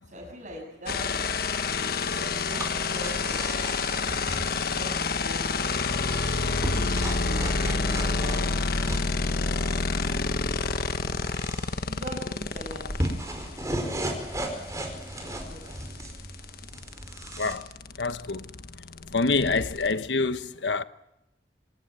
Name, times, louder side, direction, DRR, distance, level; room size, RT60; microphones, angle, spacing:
voice 1, 0.0-4.1 4.7-5.6 5.9-11.1 11.9-16.1, equal, 45° right, 7.2 m, -44 dB
sound 1, 0.9-13.1 15.2-15.3 15.6-19.9, left 4 dB, 60° left, 1.3 m, -28 dB
sound 2, 2.5-17.5, right 1 dB, 20° right, 4.9 m, -36 dB
voice 2, 17.4-17.7 18.0-18.5 19.1-20.8, left 3 dB, 85° left, 1.1 m, -26 dB
25.5 x 19.5 x 9.5 m
head